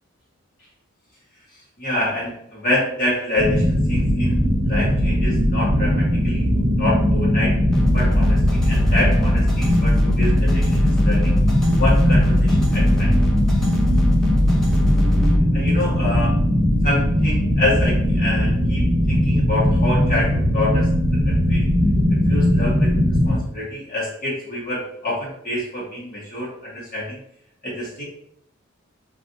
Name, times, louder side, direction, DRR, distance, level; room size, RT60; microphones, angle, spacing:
voice 1, 1.8-6.4 6.8-7.6 7.9-11.3 11.8-13.2 15.5-16.4 16.8-21.7 22.1-22.9 23.2-27.2 27.6-28.0, left 1 dB, 45° left, -5 dB, 1.0 m, -27 dB
sound 1, 3.4-23.3, equal, 25° right, 0.9 m, -19 dB
sound 2, 7.7-15.4, left 1 dB, 5° left, 0.5 m, -21 dB
4.0 x 2.3 x 2.6 m, 0.71 s
head